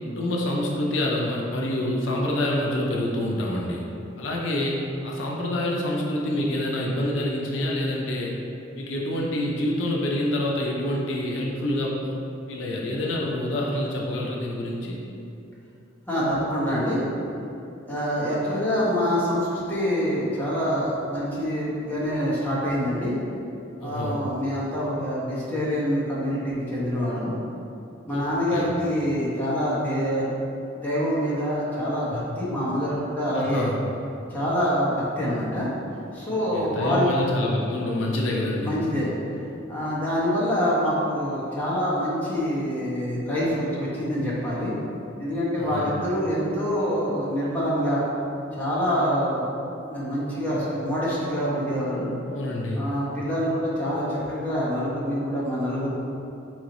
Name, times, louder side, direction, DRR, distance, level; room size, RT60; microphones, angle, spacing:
voice 1, 0.1-3.8 4.2-8.3 8.7-12.1 12.5-15.0 23.8-24.2 28.1-28.7 33.3-33.8 36.3-38.7 45.6-45.9 52.3-52.8, left 1 dB, 75° left, -2 dB, 0.5 m, -27 dB
voice 2, 16.1-17.0 17.8-23.1 23.8-27.3 28.1-30.3 30.8-33.7 34.3-35.7 36.1-37.1 38.6-39.1 39.7-44.7 45.2-48.0 48.6-49.5 49.9-52.1 52.8-56.0, equal, 10° left, -9 dB, 1.0 m, -26 dB
3.9 x 3.1 x 3.9 m, 2.8 s
head